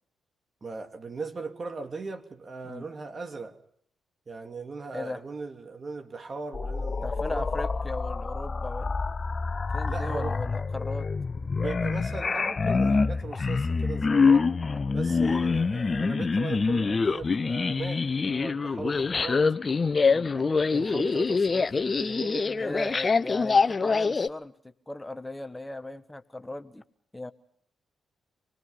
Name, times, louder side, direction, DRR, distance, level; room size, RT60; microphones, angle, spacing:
voice 1, 0.6-3.6 4.3-7.5 9.8-10.4 11.6-14.5 14.9-19.5 20.3-22.9, right 4 dB, 45° right, 2.7 m, -38 dB
sound 1, 6.5-24.3, left 4 dB, 40° left, 0.8 m, -26 dB
voice 2, 7.0-8.9 9.7-11.1 14.6-14.8 20.0-20.3 22.6-24.5 24.9-26.8 27.1-27.3, left 2 dB, 15° left, 1.2 m, -37 dB
26.5 x 19.5 x 5.5 m
hypercardioid pair, 45°, 0 cm